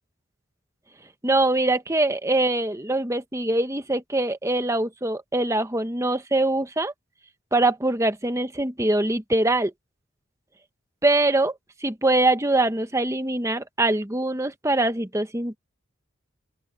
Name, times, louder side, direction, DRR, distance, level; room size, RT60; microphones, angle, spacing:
voice 1, 1.2-6.9 7.5-9.7 11.0-15.6, right 2 dB, 15° right, 1.1 m, -23 dB
open air
head